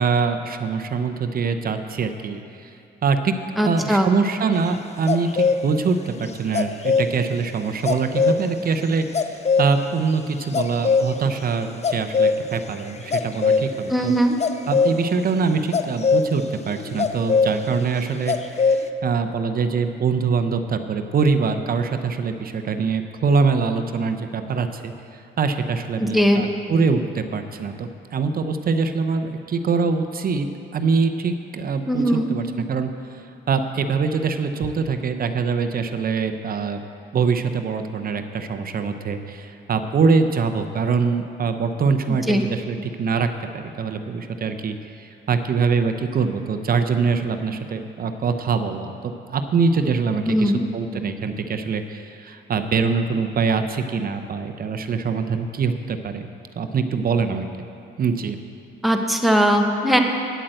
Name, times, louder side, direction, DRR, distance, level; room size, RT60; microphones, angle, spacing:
voice 1, 0.0-2.7 3.0-3.3 3.6-9.0 9.6-14.1 14.7-24.9 25.4-30.5 30.7-32.9 33.5-36.8 37.1-43.3 43.5-56.3 56.6-57.5 58.0-58.4, right 5 dB, 50° right, 7 dB, 0.7 m, -23 dB
voice 2, 3.6-4.1 13.9-14.4 26.0-26.4 31.9-32.3 42.1-42.4 50.2-50.6 58.8-60.0, equal, ahead, 2 dB, 1.1 m, -19 dB
sound 1, 5.1-5.6 6.5-7.1 7.9-8.4 9.1-9.7 10.4-11.1 11.8-12.7 13.1-13.7 14.4-15.1 15.4-17.5 18.3-18.9, left 5 dB, 35° left, 0.6 m, -20 dB
9.1 x 8.5 x 7.7 m, 2.7 s
cardioid pair, 90°, 20 cm